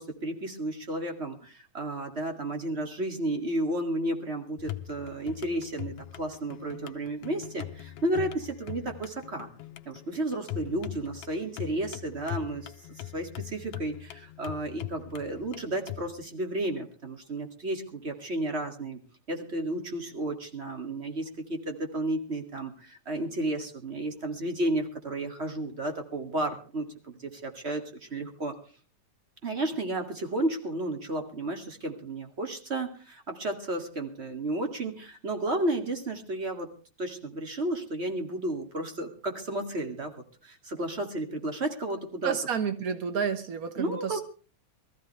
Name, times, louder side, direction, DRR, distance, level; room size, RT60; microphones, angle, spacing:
voice 1, 0.0-9.5 9.9-12.7 13.1-19.0 19.3-28.5 29.4-36.7 37.0-42.3 43.8-44.2, right 1 dB, 25° right, 5 dB, 2.1 m, -32 dB
sound 1, 4.6-16.1, left 15 dB, 70° left, 2.1 m, -41 dB
voice 2, 42.2-44.2, right 7 dB, 90° right, 9 dB, 0.7 m, -30 dB
23.0 x 14.5 x 3.3 m, 0.37 s
omnidirectional pair, 3.5 m